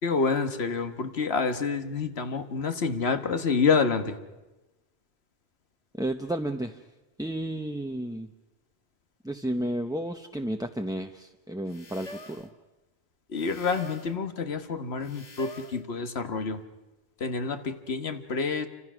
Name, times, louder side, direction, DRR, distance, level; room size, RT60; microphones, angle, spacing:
voice 1, 0.0-4.2 13.3-16.6 17.2-18.7, left 5 dB, 85° left, 8 dB, 1.6 m, -28 dB
voice 2, 5.9-6.8 7.2-8.3 9.2-12.5, right 1 dB, 5° right, 4 dB, 0.7 m, -32 dB
sound 1, 11.7-12.5 13.4-14.2 15.0-15.8, left 2 dB, 40° left, 1.6 m, -45 dB
28.5 x 25.5 x 6.2 m, 1.1 s
omnidirectional pair, 1.0 m